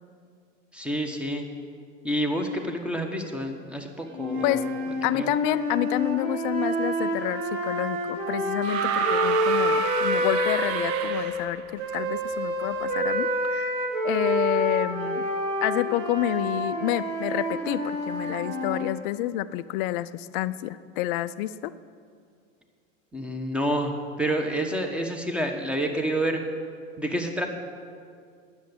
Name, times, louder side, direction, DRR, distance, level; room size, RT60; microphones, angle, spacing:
voice 1, 0.7-1.4 2.0-4.7 5.1-5.3 23.1-26.4 27.0-27.5, right 1 dB, 5° right, 4 dB, 1.2 m, -28 dB
sound 1, 4.1-11.1 11.8-19.0, equal, 75° right, 2.3 m, -28 dB
voice 2, 5.0-13.7 14.0-15.3 15.6-21.7, left 15 dB, 40° left, 15 dB, 0.5 m, -29 dB
sound 2, 8.6-11.7 12.9-13.0, right 8 dB, 55° right, 0.8 m, -29 dB
10.0 x 7.1 x 8.1 m, 2.2 s
hypercardioid pair, 95°, 39 cm